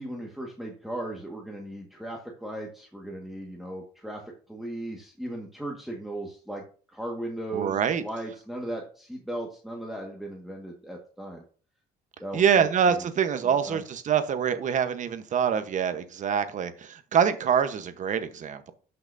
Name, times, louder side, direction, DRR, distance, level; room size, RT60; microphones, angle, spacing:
voice 1, 0.0-4.2 4.5-6.6 6.9-11.4 12.2-13.0 13.4-13.8, right 1 dB, ahead, -1 dB, 1.6 m, -37 dB
voice 2, 7.5-8.0 12.3-18.7, right 7 dB, 45° right, 10 dB, 1.0 m, -25 dB
12.5 x 5.9 x 2.7 m, 0.41 s
cardioid pair, 110°, 17 cm